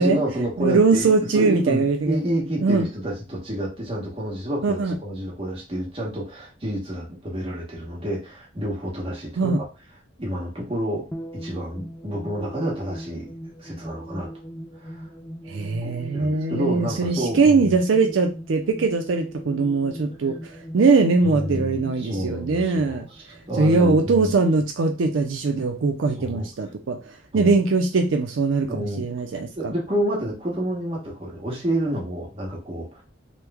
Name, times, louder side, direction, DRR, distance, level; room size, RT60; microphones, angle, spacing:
voice 1, 0.0-1.1 1.3-9.6 10.2-11.0 11.3-13.3 13.6-14.3 14.8-15.0 15.8-17.8 21.2-24.3 26.2-26.5 27.3-27.5 28.7-29.1 29.6-33.0, right 1 dB, 30° right, -2 dB, 1.1 m, -29 dB
voice 2, 0.6-2.2 2.6-2.9 4.6-5.0 9.4-9.6 15.5-20.4 20.7-23.1 23.6-27.0 27.3-29.7, right 4 dB, 80° right, 4 dB, 0.4 m, -21 dB
sound 1, 11.1-23.9, equal, 10° left, 0.3 m, -39 dB
3.1 x 2.1 x 3.4 m, 0.30 s
head